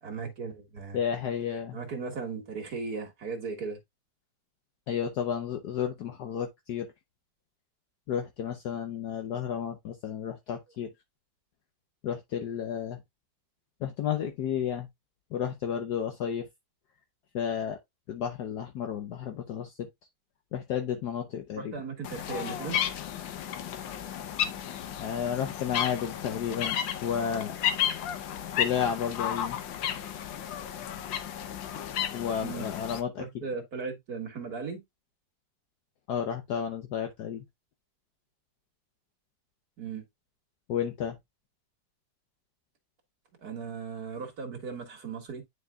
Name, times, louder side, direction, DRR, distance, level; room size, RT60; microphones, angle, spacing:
voice 1, 0.0-1.0 1.7-3.8 21.6-22.8 32.4-32.7 33.2-34.8 39.8-40.0 43.4-45.4, right 5 dB, 55° right, 2.0 m, -37 dB
voice 2, 0.9-1.8 4.9-6.9 8.1-10.9 12.0-13.0 13.8-14.9 15.3-16.5 17.3-17.8 18.1-19.9 20.5-21.7 25.0-27.5 28.5-29.6 32.1-33.2 36.1-37.4 40.7-41.2, left 8 dB, 65° left, 1.2 m, -32 dB
sound 1, 22.0-33.0, left 10 dB, 90° left, 1.5 m, -33 dB
9.4 x 4.6 x 2.3 m
omnidirectional pair, 2.0 m